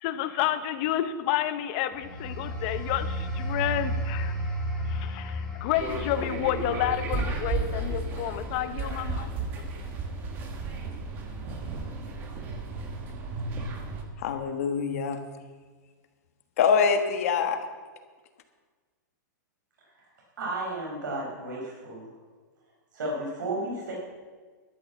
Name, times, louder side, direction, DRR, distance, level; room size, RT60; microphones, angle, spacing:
voice 1, 0.0-4.3 4.9-9.3 9.6-9.7, left 12 dB, 25° left, 11 dB, 0.6 m, -30 dB
sound 1, 1.9-12.3 12.7-13.0, equal, 5° left, 2.3 m, -35 dB
sound 2, 5.7-14.0, right 3 dB, 20° right, 1.1 m, -34 dB
voice 2, 14.2-15.2 16.6-17.6, left 6 dB, 45° left, 7 dB, 1.4 m, -24 dB
voice 3, 20.4-22.1 22.9-23.9, right 2 dB, 75° right, -3 dB, 4.7 m, -33 dB
12.5 x 9.0 x 7.2 m, 1.4 s
hypercardioid pair, 175°, 11 cm